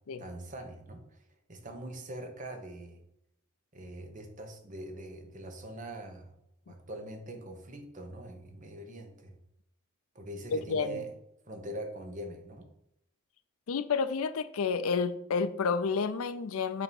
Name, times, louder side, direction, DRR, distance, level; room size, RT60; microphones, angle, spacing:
voice 1, 0.2-1.2 1.5-3.0 3.7-6.3 6.7-9.3 10.1-11.1 11.5-12.7, right 1 dB, 35° right, 1.0 m, -43 dB
voice 2, 10.5-11.0 13.7-16.8, left 5 dB, 65° left, 0.4 m, -30 dB
8.3 x 2.9 x 5.3 m
head